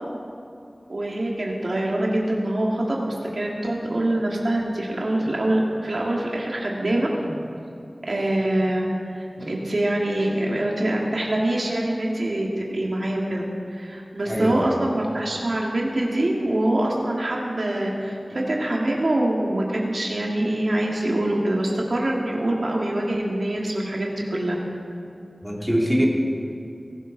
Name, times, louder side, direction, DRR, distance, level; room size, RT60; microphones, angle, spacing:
voice 1, 0.9-7.4 8.1-13.4 13.7-24.6, right 1 dB, 70° right, -2 dB, 2.1 m, -24 dB
voice 2, 14.3-14.8 25.4-26.1, equal, 5° right, -3 dB, 2.8 m, -23 dB
20.0 x 12.0 x 4.0 m, 2.6 s
wide cardioid pair, 50°, 0 cm